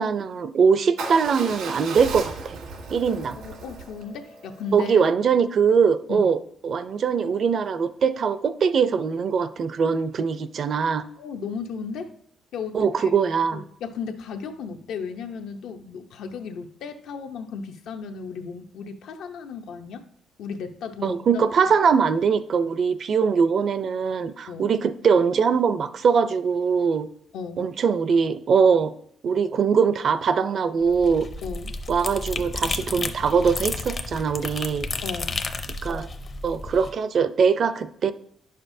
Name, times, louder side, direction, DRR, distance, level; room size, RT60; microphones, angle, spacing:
voice 1, 0.0-2.6 2.9-3.4 4.7-6.4 6.6-11.1 12.7-13.6 21.0-27.1 27.6-28.9 29.2-31.3 31.9-34.9 35.8-36.1 36.4-38.1, right 6 dB, 45° right, 12 dB, 0.4 m, -22 dB
Motorcycle / Engine starting / Idling, 1.0-5.1, right 3 dB, 90° right, 1.6 m, -36 dB
voice 2, 3.2-5.0 6.1-6.3 11.2-12.1 12.5-13.2 13.5-20.0 20.4-21.4 24.5-24.7 27.3-27.7 31.4-31.7 35.0-35.5, left 5 dB, 75° left, 6 dB, 0.7 m, -35 dB
sound 1, 30.8-36.9, left 3 dB, 30° left, 0.6 m, -32 dB
10.5 x 6.6 x 2.7 m, 0.67 s
cardioid pair, 150°, 0 cm